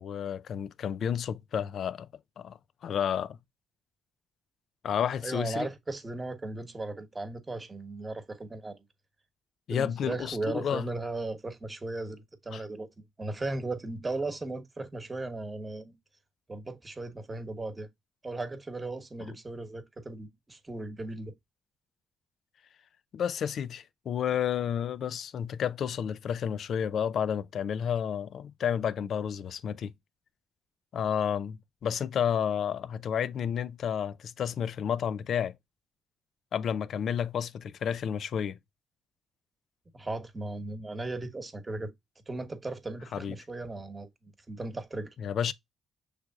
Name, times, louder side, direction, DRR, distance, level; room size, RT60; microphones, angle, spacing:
voice 1, 0.0-2.1 2.4-2.6 2.8-3.4 4.8-5.7 9.7-10.9 12.5-12.6 19.2-19.3 23.1-29.9 30.9-35.6 36.5-38.6 43.1-43.4 45.2-45.5, left 8 dB, 65° left, 0.4 m, -31 dB
voice 2, 5.2-8.8 9.7-12.9 13.2-15.9 16.5-17.9 18.2-21.3 39.9-41.9 42.3-45.1, right 2 dB, 20° right, 1.1 m, -37 dB
6.4 x 3.3 x 2.3 m
cardioid pair, 90°, 0 cm